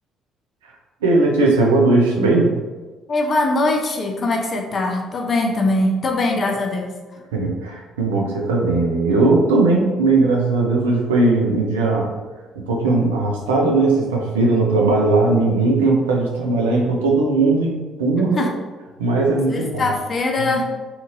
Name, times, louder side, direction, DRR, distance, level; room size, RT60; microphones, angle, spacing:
voice 1, 1.0-2.5 7.3-12.1 12.6-18.5 19.0-19.9, right 3 dB, 80° right, 0 dB, 0.4 m, -18 dB
voice 2, 3.1-6.9 18.3-18.5 19.5-20.7, left 2 dB, 45° left, 2 dB, 0.5 m, -21 dB
2.8 x 2.6 x 2.5 m, 1.3 s
figure-of-eight pair, 45°, 0 cm